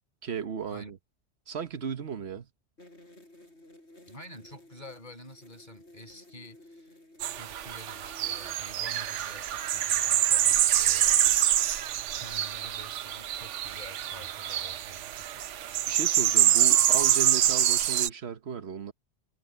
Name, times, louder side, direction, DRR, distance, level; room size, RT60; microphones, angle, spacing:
voice 1, 0.2-1.0 1.5-2.5 15.9-18.9, right 6 dB, 65° right, 1.4 m, -35 dB
sound 1, 2.8-8.5, left 1 dB, 70° left, 5.6 m, -54 dB
voice 2, 4.1-7.0 7.3-11.2 12.2-15.4, left 1 dB, 40° left, 5.6 m, -48 dB
sound 2, 7.2-18.1, right 11 dB, 85° right, 1.0 m, -26 dB
omnidirectional pair, 1.2 m